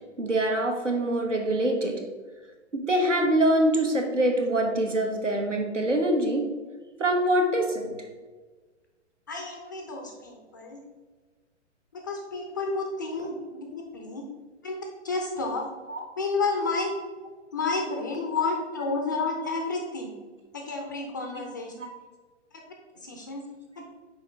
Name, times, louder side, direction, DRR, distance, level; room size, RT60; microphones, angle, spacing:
voice 1, 0.2-2.0 2.7-6.5 7.0-7.9 15.9-16.0 21.4-21.5 21.8-21.9, right 1 dB, 85° right, 2 dB, 1.3 m, -24 dB
voice 2, 9.3-10.8 11.9-14.3 14.6-14.8 15.0-15.6 16.2-16.9 17.5-20.1 20.5-21.7 23.0-23.4, left 3 dB, 15° left, 2 dB, 0.4 m, -30 dB
6.2 x 4.6 x 3.5 m, 1.3 s
figure-of-eight pair, 115°, 36 cm